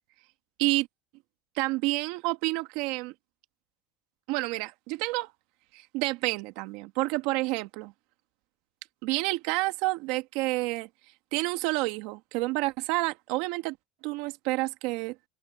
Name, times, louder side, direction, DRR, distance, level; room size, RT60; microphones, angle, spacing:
voice 1, 1.6-3.1 4.3-5.3 5.7-7.9 9.0-10.9 11.3-13.8 14.0-15.2, right 21 dB, 65° right, 1.8 m, -29 dB
open air
supercardioid pair, 125°, 0 cm